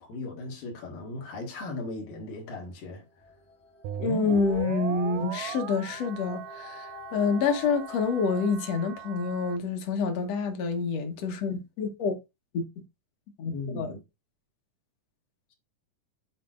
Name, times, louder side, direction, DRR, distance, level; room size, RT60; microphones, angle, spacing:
voice 1, 0.0-3.1 13.5-14.0, left 2 dB, 85° left, 3.5 m, -37 dB
sound 1, 3.1-8.5, left 4 dB, 5° left, 0.8 m, -46 dB
sound 2, 3.8-9.6, right 13 dB, 80° right, 1.9 m, -38 dB
voice 2, 4.0-12.2 12.5-12.6 13.4-14.0, left 5 dB, 60° left, 2.0 m, -28 dB
12.5 x 4.3 x 2.5 m
omnidirectional pair, 3.9 m